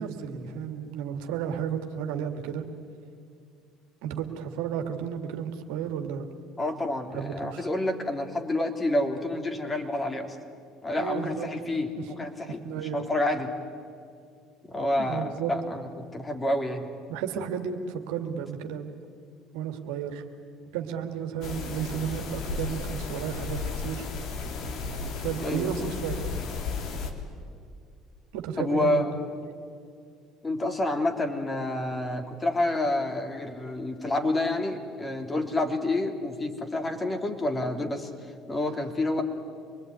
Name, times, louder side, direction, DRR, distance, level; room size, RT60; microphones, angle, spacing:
voice 1, 0.0-2.6 4.0-6.3 7.1-7.7 11.0-11.5 12.6-13.0 14.9-15.5 17.1-18.9 19.5-20.2 20.7-24.1 25.2-26.2 28.3-29.0, right 8 dB, 80° right, 5 dB, 2.1 m, -33 dB
voice 2, 6.6-10.4 10.8-13.5 14.7-16.9 25.4-25.9 28.6-29.3 30.4-38.1 38.5-39.2, left 1 dB, 25° left, 4 dB, 3.4 m, -29 dB
sound 1, 21.4-27.1, left 4 dB, 65° left, 3.1 m, -34 dB
25.5 x 21.0 x 9.6 m, 2.3 s
supercardioid pair, 75°, 0 cm